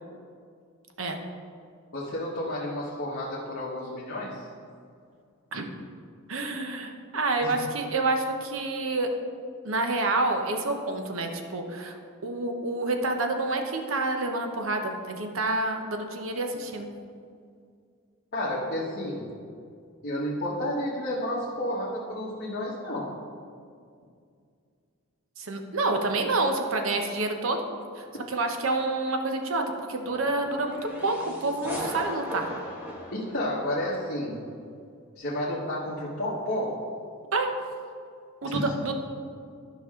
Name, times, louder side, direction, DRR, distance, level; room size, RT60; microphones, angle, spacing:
voice 1, 1.9-4.5 7.4-7.5 18.3-19.3 20.0-23.1 33.1-34.4 35.1-36.8 38.4-38.7, left 1 dB, 50° left, -7 dB, 1.3 m, -31 dB
voice 2, 6.3-9.1 9.6-12.0 12.2-16.9 25.4-27.6 28.0-29.6 29.9-32.5 37.3-37.5 38.4-38.9, right 2 dB, 65° right, 4 dB, 0.9 m, -28 dB
sound 1, 30.0-34.1, equal, 10° right, 1.6 m, -38 dB
12.5 x 5.4 x 3.7 m, 2.2 s
head